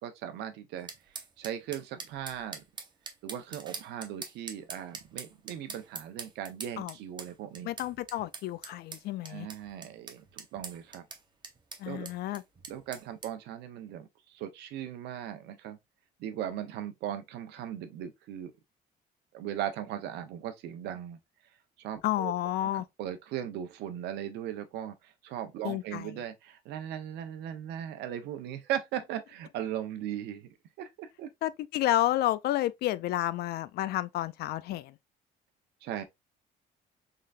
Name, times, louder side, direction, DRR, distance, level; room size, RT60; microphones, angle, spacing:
voice 1, 0.0-2.6 3.2-7.7 9.2-11.0 11.8-12.1 12.7-15.8 16.2-18.5 19.3-21.2 21.8-22.3 22.6-30.5 30.8-31.3 35.8-36.0, right 10 dB, 85° right, 0.8 m, -38 dB
sound 1, 0.9-13.3, right 5 dB, 25° right, 0.8 m, -44 dB
voice 2, 7.6-9.5 11.8-12.4 22.0-22.9 25.6-26.1 31.4-34.9, left 14 dB, 70° left, 0.4 m, -30 dB
3.8 x 3.4 x 2.5 m
cardioid pair, 110°, 17 cm